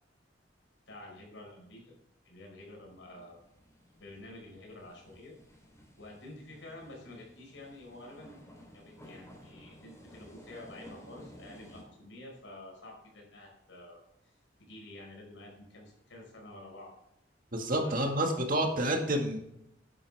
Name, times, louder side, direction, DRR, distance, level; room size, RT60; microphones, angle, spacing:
voice 1, 0.9-1.9 2.2-3.4 4.0-5.3 6.0-8.4 8.7-16.9 17.8-18.7, left 1 dB, 85° left, 0 dB, 5.1 m, -49 dB
sound 1, 2.7-11.8, equal, 15° left, 3.7 m, -55 dB
voice 2, 17.5-19.4, right 1 dB, 50° right, 2 dB, 2.1 m, -29 dB
12.0 x 9.9 x 3.6 m, 0.81 s
head